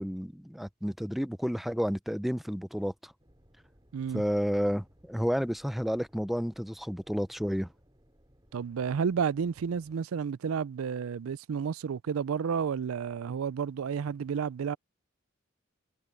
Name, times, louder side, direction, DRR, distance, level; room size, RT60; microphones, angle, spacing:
voice 1, 0.0-3.1 4.1-7.7, equal, ahead, 0.5 m, -31 dB
sound 1, 3.2-10.0, equal, 20° right, 4.7 m, -63 dB
voice 2, 3.9-4.2 8.5-14.8, right 6 dB, 80° right, 0.4 m, -31 dB
head